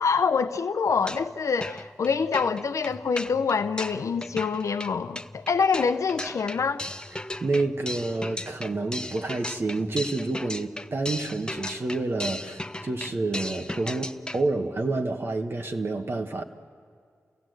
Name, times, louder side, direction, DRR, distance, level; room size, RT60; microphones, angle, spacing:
voice 1, 0.0-6.8, left 5 dB, 85° left, 9 dB, 0.5 m, -25 dB
sound 1, 0.9-1.3 1.6-14.5, left 1 dB, 15° left, 0.6 m, -37 dB
voice 2, 7.4-16.4, right 2 dB, 50° right, 4 dB, 1.2 m, -29 dB
28.5 x 16.0 x 7.8 m, 2.2 s
wide cardioid pair, 75°, 5 cm